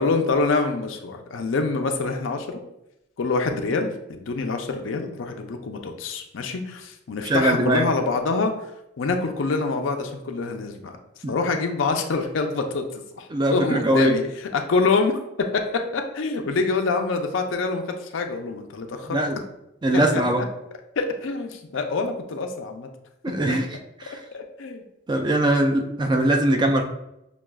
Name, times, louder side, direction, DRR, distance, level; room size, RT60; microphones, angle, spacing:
voice 1, 0.0-2.6 3.2-8.5 9.0-11.0 11.3-15.2 15.5-19.2 20.1-20.2 21.0-22.9 23.3-23.6 24.3-24.8, left 3 dB, 75° left, 5 dB, 0.5 m, -26 dB
voice 2, 7.2-7.8 11.2-11.4 13.3-14.2 19.1-19.4 19.8-20.4 23.2-23.7 24.0-24.2 25.1-26.8, right 1 dB, 20° right, 4 dB, 0.3 m, -21 dB
5.9 x 2.3 x 2.3 m, 0.86 s
head